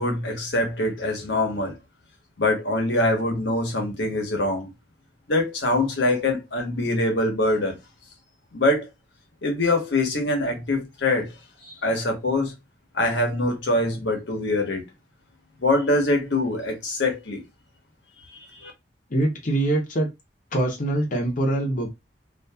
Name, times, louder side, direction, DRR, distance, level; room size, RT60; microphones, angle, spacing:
voice 1, 0.0-1.8 2.4-4.7 5.3-7.8 8.5-8.9 9.4-11.3 11.6-12.5 12.9-14.9 15.6-17.4 18.3-18.7, left 2 dB, 80° left, 1.0 m, -24 dB
voice 2, 19.1-20.1 20.5-21.9, right 1 dB, 45° left, 0.8 m, -23 dB
2.7 x 2.6 x 2.2 m
head